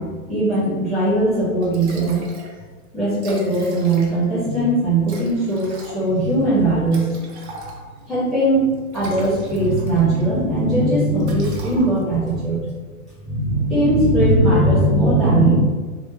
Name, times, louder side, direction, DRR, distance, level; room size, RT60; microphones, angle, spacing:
voice 1, 0.0-2.2 2.9-7.3 8.1-12.6 13.2-15.6, right 1 dB, ahead, -14 dB, 0.6 m, -19 dB
Liquid, 1.3-1.4 1.6-2.5 2.8-2.9 3.1-4.4 5.0-8.1 8.7-10.3 10.6-10.8 11.2-12.2, right 3 dB, 50° right, 0.8 m, -40 dB
3.3 x 2.7 x 3.3 m, 1.4 s
hypercardioid pair, 160°, 44 cm